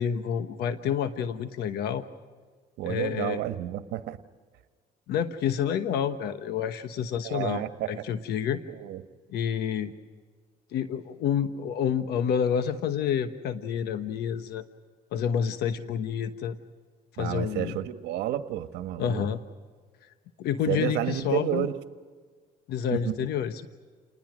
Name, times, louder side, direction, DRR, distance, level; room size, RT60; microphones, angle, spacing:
voice 1, 0.0-2.0 2.9-3.4 5.1-8.6 9.3-9.9 10.7-14.6 15.1-16.6 17.2-17.8 19.0-19.4 20.4-21.7 22.7-23.7, left 8 dB, 75° left, 10 dB, 1.2 m, -29 dB
voice 2, 2.8-4.2 7.2-7.9 8.8-9.0 17.2-19.3 20.7-21.7 22.9-23.1, right 12 dB, 85° right, 9 dB, 1.4 m, -30 dB
29.5 x 20.0 x 6.3 m, 1.6 s
cardioid pair, 110°, 17 cm